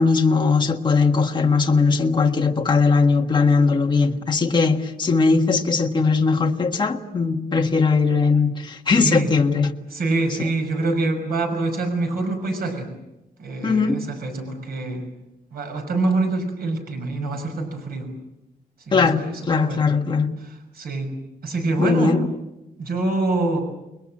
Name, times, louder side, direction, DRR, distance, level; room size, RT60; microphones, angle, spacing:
voice 1, 0.0-9.7 13.6-14.0 18.9-20.3 21.8-22.2, left 4 dB, 30° left, 2 dB, 1.7 m, -19 dB
voice 2, 8.9-9.3 9.9-12.9 13.4-15.0 15.5-18.1 18.9-19.9 20.4-21.1 21.4-22.1 22.8-23.6, right 2 dB, 75° right, 4 dB, 6.0 m, -25 dB
29.5 x 21.0 x 7.7 m, 0.94 s
wide cardioid pair, 160°, 16 cm